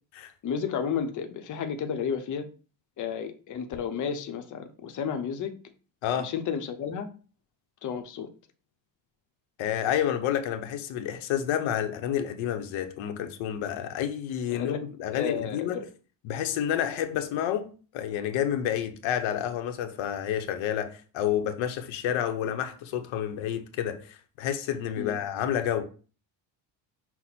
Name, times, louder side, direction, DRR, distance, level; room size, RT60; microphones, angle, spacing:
voice 1, 0.4-2.5 3.0-5.5 6.2-7.1 7.8-8.3 14.5-14.8 15.1-15.9 25.0-25.2, left 7 dB, 40° left, 0.7 m, -32 dB
voice 2, 9.6-15.8 16.2-17.7 17.9-25.8, left 10 dB, 85° left, 0.8 m, -29 dB
5.9 x 2.1 x 4.1 m
cardioid pair, 130°, 46 cm